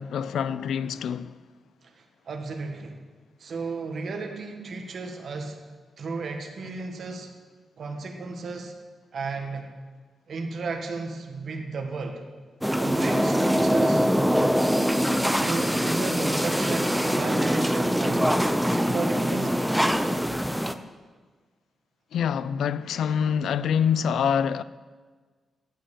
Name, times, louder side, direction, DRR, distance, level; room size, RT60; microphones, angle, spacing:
voice 1, 0.0-1.3 22.1-24.6, left 7 dB, 90° left, 0.4 m, -25 dB
voice 2, 1.8-3.0 3.4-5.6 6.0-7.3 7.8-8.7 9.1-9.7 10.3-12.2 12.8-14.1 15.2-19.8, right 3 dB, 55° right, 1.6 m, -34 dB
sound 1, 12.6-20.7, equal, ahead, 0.5 m, -23 dB
14.0 x 5.6 x 8.5 m
wide cardioid pair, 140°, 0 cm